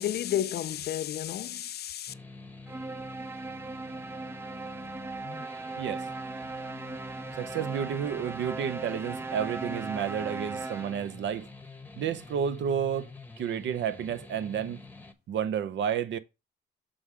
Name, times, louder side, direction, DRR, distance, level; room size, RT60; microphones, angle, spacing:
voice 1, 0.0-2.1, left 11 dB, 55° left, 0.4 m, -31 dB
sound 1, 2.1-15.1, left 3 dB, 10° left, 0.9 m, -47 dB
sound 2, 2.7-11.2, right 3 dB, 10° right, 0.4 m, -38 dB
voice 2, 7.4-11.5 12.0-13.1 13.4-14.8 15.3-16.2, right 8 dB, 65° right, 0.6 m, -31 dB
7.1 x 3.6 x 4.9 m
cardioid pair, 90°, 20 cm